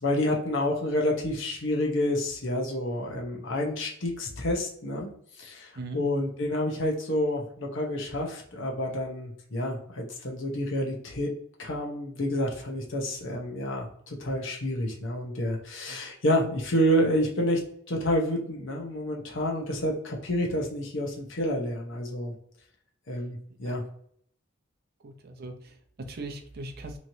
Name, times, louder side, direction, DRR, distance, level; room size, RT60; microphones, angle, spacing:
voice 1, 0.0-11.3 11.6-17.6 17.9-22.3 23.1-23.8, left 1 dB, 65° left, 0 dB, 0.7 m, -29 dB
voice 2, 25.0-27.0, right 2 dB, 50° right, 5 dB, 0.5 m, -40 dB
3.0 x 2.9 x 2.6 m, 0.64 s
head